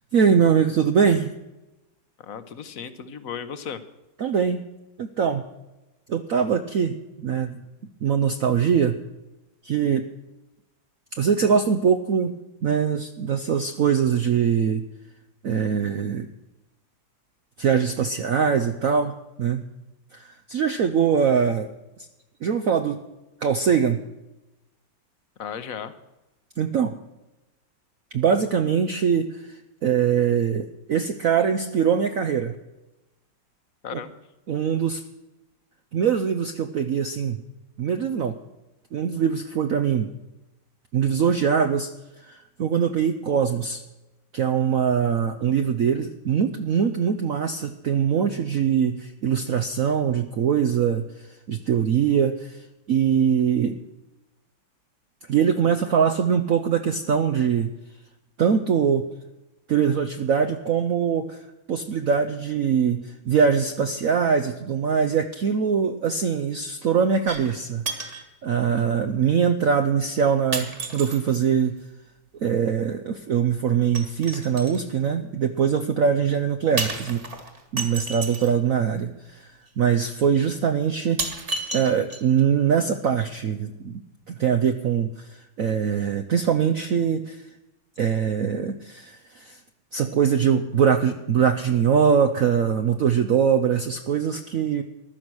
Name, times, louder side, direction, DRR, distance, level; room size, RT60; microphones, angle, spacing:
voice 1, 0.1-1.3 4.2-4.6 5.0-5.4 6.1-7.6 8.0-9.0 9.6-10.0 11.1-12.3 12.6-14.8 15.4-16.3 17.6-19.6 20.1-21.7 22.4-23.0 23.4-24.0 26.6-26.9 28.1-32.6 33.9-34.0 34.5-35.0 35.9-37.4 37.8-38.4 38.9-40.1 40.9-41.9 42.3-43.8 44.3-51.0 51.5-52.6 52.9-53.8 55.3-57.7 58.4-59.0 59.7-61.4 61.7-67.8 68.4-71.8 72.4-77.3 77.7-79.5 79.8-81.2 81.7-84.0 84.3-87.4 88.0-89.6 89.9-94.8, right 7 dB, 60° right, 7 dB, 0.9 m, -22 dB
voice 2, 2.2-3.8 25.4-25.9 33.8-34.2, left 7 dB, 55° left, 12 dB, 1.2 m, -35 dB
sound 1, 67.3-67.6 67.9-68.3 69.2-69.3 70.5-71.4 74.0-74.8 76.8-78.5 79.7-79.8 80.3-80.4 81.2-82.4 82.8-82.9, right 3 dB, 35° right, 2.0 m, -32 dB
15.0 x 12.0 x 6.2 m, 1.0 s
omnidirectional pair, 2.1 m